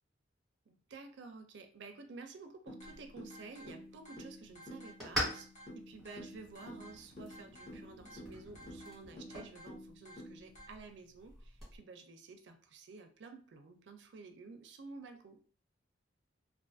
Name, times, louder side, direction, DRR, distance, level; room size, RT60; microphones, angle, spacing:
voice 1, 0.7-15.5, right 4 dB, 65° right, 6 dB, 0.4 m, -52 dB
sound 1, 2.7-10.7, left 1 dB, 40° left, 0.9 m, -51 dB
sound 2, 2.8-11.8, equal, ahead, 1.2 m, -45 dB
2.4 x 2.3 x 2.5 m, 0.41 s
head